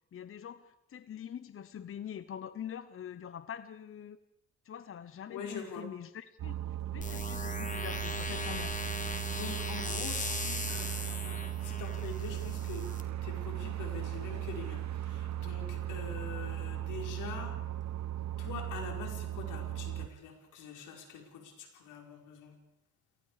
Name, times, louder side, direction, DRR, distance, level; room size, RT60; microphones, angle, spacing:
voice 1, 0.1-4.2 4.6-6.6 6.9-8.8, left 9 dB, 45° left, 13 dB, 0.9 m, -44 dB
voice 2, 5.3-5.8 9.3-17.6 18.4-22.5, left 5 dB, 85° left, 2 dB, 5.1 m, -44 dB
sound 1, 6.4-20.1, right 12 dB, 65° right, 1.2 m, -37 dB
sound 2, 7.0-13.0, left 3 dB, 25° left, 2.5 m, -39 dB
28.5 x 19.0 x 5.0 m, 0.81 s
cardioid pair, 90°, 30 cm